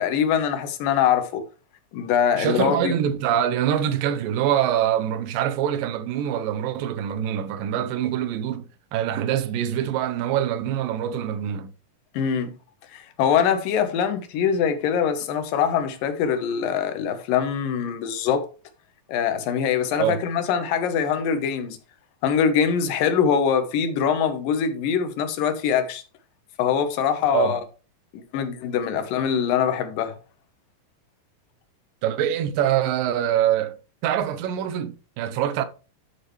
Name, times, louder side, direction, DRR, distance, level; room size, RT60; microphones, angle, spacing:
voice 1, 0.0-1.4 1.9-2.9 12.1-12.5 12.9-18.5 19.1-21.8 22.2-26.0 26.6-27.6 28.1-30.1, left 7 dB, 85° left, 2.8 m, -23 dB
voice 2, 2.3-8.6 8.9-11.7 20.0-20.2 27.3-27.6 32.0-33.8 34.0-35.6, right 10 dB, 90° right, 2.6 m, -24 dB
11.0 x 6.7 x 3.2 m
omnidirectional pair, 3.9 m